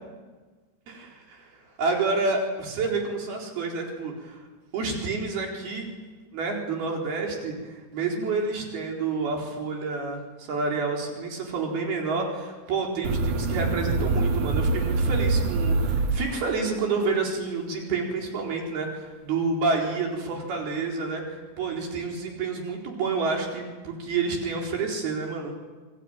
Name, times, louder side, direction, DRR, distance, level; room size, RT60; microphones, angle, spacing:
voice 1, 0.9-1.5 1.8-4.4 4.7-5.9 6.3-25.5, right 4 dB, 90° right, 0 dB, 6.2 m, -29 dB
sound 1, 13.0-16.8, right 3 dB, 65° right, 2.4 m, -25 dB
28.0 x 21.0 x 9.2 m, 1.3 s
omnidirectional pair, 4.3 m